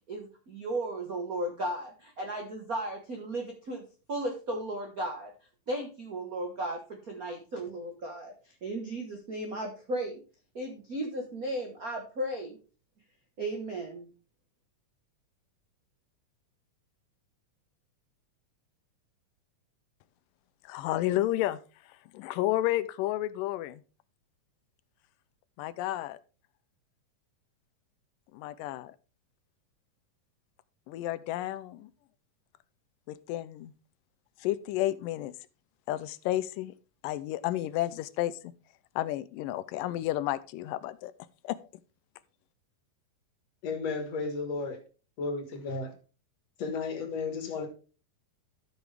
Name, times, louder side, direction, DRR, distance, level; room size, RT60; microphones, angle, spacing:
voice 1, 0.1-3.8 4.1-5.3 5.7-8.3 8.6-10.2 10.5-12.6 13.4-14.1, right 1 dB, 70° right, 3 dB, 0.8 m, -35 dB
voice 2, 20.6-21.6 22.1-23.8 25.6-26.2 28.3-29.0 30.9-31.9 33.1-33.7 34.4-35.3 35.9-36.7 37.0-38.5 39.0-41.1 41.4-41.6, left 14 dB, 85° left, 15 dB, 2.2 m, -31 dB
voice 3, 43.6-44.8 45.2-45.9 46.6-47.7, left 4 dB, 55° left, 5 dB, 2.6 m, -33 dB
13.0 x 6.2 x 3.4 m, 0.36 s
omnidirectional pair, 3.8 m